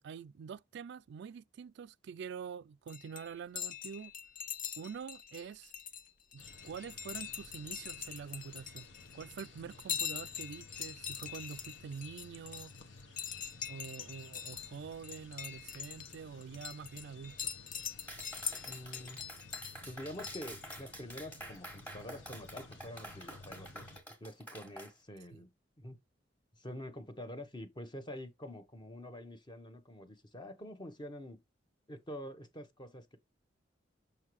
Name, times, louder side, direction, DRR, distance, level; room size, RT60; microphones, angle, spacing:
voice 1, 0.0-4.1 4.8-5.7 6.3-8.9 9.1-12.7 13.7-17.5 25.3-25.4, right 6 dB, 65° right, 0.3 m, -46 dB
sound 1, 2.9-20.8, left 8 dB, 45° left, 0.7 m, -43 dB
sound 2, 6.4-24.0, left 2 dB, 80° left, 1.1 m, -55 dB
Clapping, 18.1-24.9, equal, 10° left, 1.5 m, -48 dB
voice 2, 18.7-19.2 19.8-23.9 24.2-25.5 25.8-26.0 26.6-31.4 31.9-33.2, left 1 dB, 25° left, 1.0 m, -46 dB
6.8 x 5.5 x 3.1 m
head